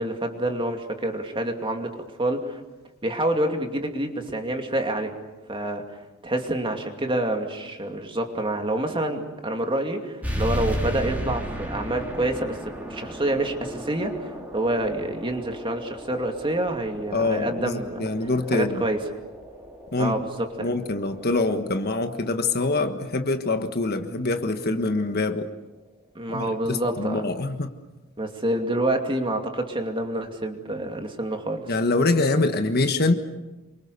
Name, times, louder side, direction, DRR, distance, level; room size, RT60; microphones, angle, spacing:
voice 1, 0.0-2.6 3.0-5.1 5.5-6.0 6.2-12.6 12.9-18.1 18.5-19.0 20.0-20.7 26.1-27.3 28.2-31.7, right 1 dB, 25° right, 4 dB, 2.6 m, -27 dB
sound 1, 10.2-25.3, equal, 5° right, 3.6 m, -36 dB
voice 2, 17.1-18.8 19.9-20.2 20.6-25.5 26.3-27.7 31.7-33.1, left 2 dB, 45° left, 7 dB, 1.5 m, -24 dB
28.0 x 24.5 x 6.9 m, 1.1 s
head